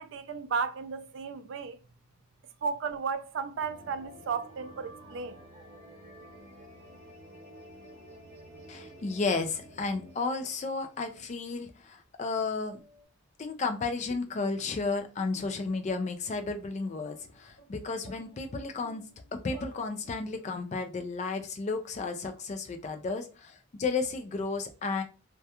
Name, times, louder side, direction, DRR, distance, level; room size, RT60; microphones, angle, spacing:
voice 1, 0.0-1.8 2.6-5.3, right 5 dB, 60° right, 0.3 m, -34 dB
sound 1, 3.6-11.1 11.3-11.4 12.6-13.1, equal, 35° right, 0.7 m, -51 dB
voice 2, 8.7-12.8 13.4-19.0 19.3-25.0, left 4 dB, 35° left, 0.3 m, -33 dB
sound 2, 17.0-20.5, right 2 dB, 85° left, 0.8 m, -55 dB
2.3 x 2.2 x 2.8 m
head